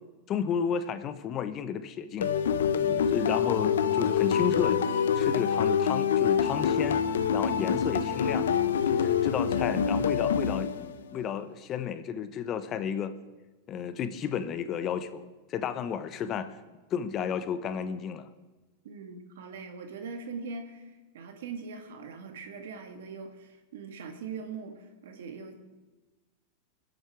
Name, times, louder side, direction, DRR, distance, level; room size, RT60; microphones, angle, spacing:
voice 1, 0.3-2.3 2.8-7.0 7.3-8.5 8.9-13.1 13.7-15.2 15.5-16.5 16.9-18.3, left 7 dB, 35° left, 11 dB, 1.1 m, -32 dB
sound 1, 2.2-11.1, left 7 dB, 90° left, 0.8 m, -26 dB
voice 2, 18.8-25.5, right 5 dB, 75° right, 5 dB, 1.8 m, -41 dB
22.5 x 8.0 x 4.8 m, 1.2 s
hypercardioid pair, 120°, 0 cm